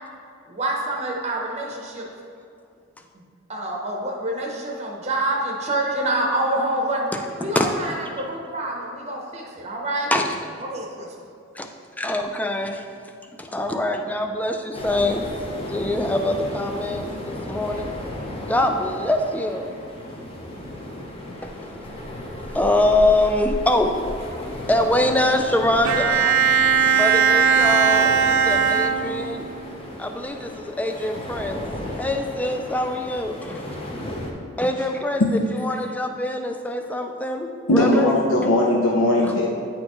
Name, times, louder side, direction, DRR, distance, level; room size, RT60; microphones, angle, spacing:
voice 1, 0.5-2.1 3.1-3.2 3.5-7.0 7.4-10.1 10.6-11.1, right 1 dB, 30° right, -1 dB, 0.7 m, -27 dB
voice 2, 12.0-12.8 13.4-15.2 15.6-17.9 18.5-19.7 21.4-21.5 22.5-23.9 24.7-26.4 26.9-29.5 30.0-31.6 32.0-33.7 34.6-35.2 35.5-38.1 39.2-39.4, left 1 dB, 5° left, 4 dB, 0.3 m, -24 dB
sound 1, 14.7-34.3, left 1 dB, 25° left, 0.7 m, -34 dB
Bowed string instrument, 25.8-29.5, right 6 dB, 80° right, 0.4 m, -19 dB
voice 3, 37.7-39.5, left 1 dB, 75° left, -2 dB, 0.6 m, -18 dB
9.6 x 4.3 x 3.0 m, 2.3 s
head